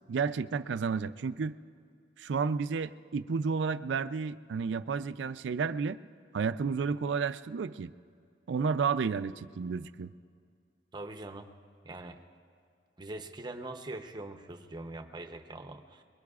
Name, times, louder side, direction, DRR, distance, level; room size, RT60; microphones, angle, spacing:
voice 1, 0.1-1.6 2.2-6.0 6.3-7.9 8.5-10.1, right 5 dB, 70° right, 14 dB, 0.4 m, -31 dB
voice 2, 10.9-11.5 11.8-12.2 13.0-16.0, right 2 dB, 25° right, 6 dB, 0.7 m, -42 dB
23.5 x 22.0 x 2.4 m, 2.2 s
head